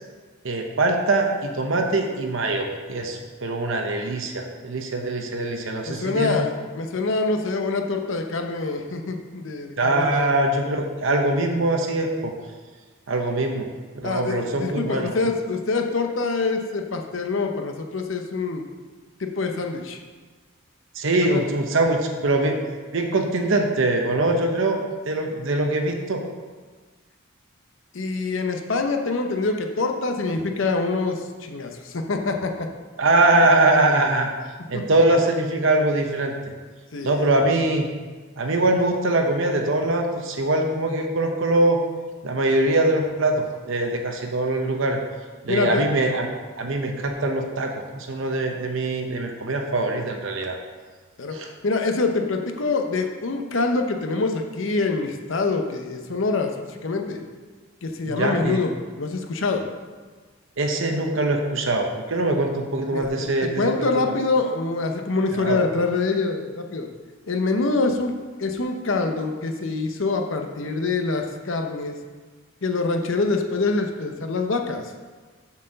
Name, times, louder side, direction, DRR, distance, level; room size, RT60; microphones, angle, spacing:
voice 1, 0.4-6.5 9.8-12.3 13.1-13.7 14.0-15.1 20.9-22.6 22.9-24.8 25.1-26.2 33.0-34.3 34.7-36.3 37.0-37.9 38.4-41.8 42.2-45.0 45.4-46.3 46.6-50.5 51.3-51.4 58.1-58.6 60.6-64.1 65.4-65.6, right 2 dB, 60° right, 3 dB, 0.8 m, -22 dB
voice 2, 5.9-10.3 14.0-18.6 19.2-20.0 21.3-21.4 27.9-32.7 34.7-34.9 36.9-37.3 45.5-45.8 51.2-57.2 57.8-59.7 62.9-66.9 67.3-68.1 68.4-72.0 72.6-74.9, left 3 dB, 60° left, 4 dB, 0.7 m, -25 dB
7.2 x 4.5 x 6.4 m, 1.4 s
head